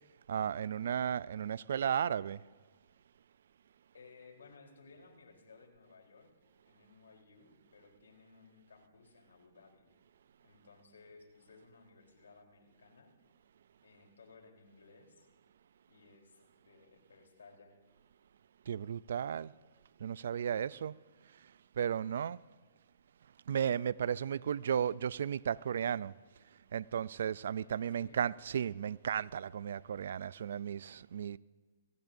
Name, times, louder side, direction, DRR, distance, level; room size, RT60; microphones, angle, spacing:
voice 1, 0.3-2.4 18.7-19.5 20.0-20.9 21.4-22.4 23.5-26.1 26.7-31.4, right 8 dB, 70° right, 0.3 m, -34 dB
voice 2, 3.9-6.3 6.6-9.9 10.4-13.1 13.8-15.3 15.9-16.4 16.6-17.8 27.6-28.3, left 4 dB, 85° left, 3.7 m, -59 dB
25.0 x 18.0 x 2.7 m
hypercardioid pair, 135°, 0 cm